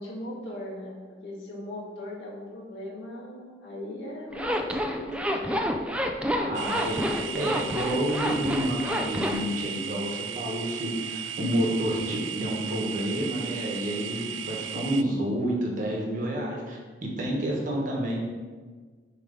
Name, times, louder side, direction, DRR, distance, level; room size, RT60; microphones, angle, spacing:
voice 1, 0.0-5.7, left 1 dB, 85° left, -5 dB, 1.8 m, -39 dB
Zipper (clothing), 4.3-9.4, equal, 5° right, 0.4 m, -28 dB
voice 2, 6.4-18.2, right 1 dB, 45° right, -2 dB, 1.2 m, -29 dB
sound 1, 6.5-15.0, right 8 dB, 90° right, 0.3 m, -36 dB
6.9 x 3.2 x 5.1 m, 1.5 s
head